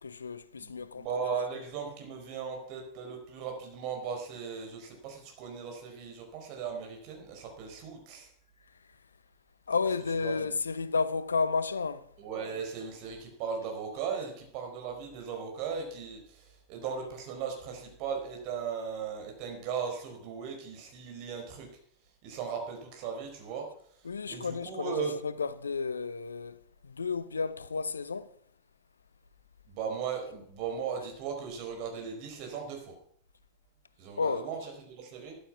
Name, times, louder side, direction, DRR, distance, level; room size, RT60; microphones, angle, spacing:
voice 1, 0.0-1.2 9.7-12.0 24.0-26.6 26.8-28.3 34.2-34.5, left 4 dB, 75° left, 0.7 m, -32 dB
voice 2, 0.6-8.3 10.1-10.6 12.2-21.7 22.2-23.7 24.3-25.1 29.7-33.0 34.0-35.4, right 6 dB, 45° right, 4.7 m, -37 dB
13.0 x 12.0 x 6.0 m
figure-of-eight pair, 90°, 0 cm